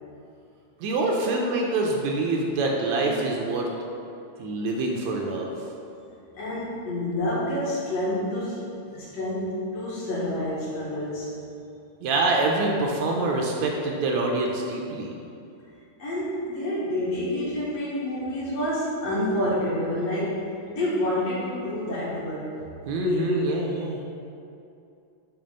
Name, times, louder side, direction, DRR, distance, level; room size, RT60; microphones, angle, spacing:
voice 1, 0.8-3.7 4.4-5.5 12.0-15.2 22.9-24.0, right 2 dB, 80° right, 0 dB, 1.8 m, -25 dB
voice 2, 6.4-11.3 16.0-22.5 23.0-23.4, left 1 dB, 60° left, -9 dB, 2.4 m, -28 dB
6.8 x 3.1 x 5.2 m, 2.7 s
omnidirectional pair, 3.3 m